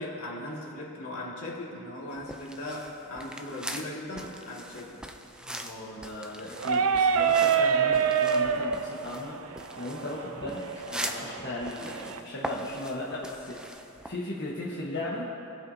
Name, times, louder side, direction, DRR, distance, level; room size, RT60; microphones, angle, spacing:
voice 1, 0.0-5.0 10.3-10.4, left 1 dB, 75° left, -3 dB, 2.0 m, -38 dB
sound 1, 2.1-14.1, right 1 dB, 5° right, 0.3 m, -41 dB
voice 2, 5.4-9.4 9.7-13.6 14.0-15.3, left 1 dB, 50° left, -6 dB, 1.2 m, -36 dB
sound 2, 6.6-12.2, right 6 dB, 70° right, 0.5 m, -27 dB
20.5 x 7.7 x 2.7 m, 2.9 s
head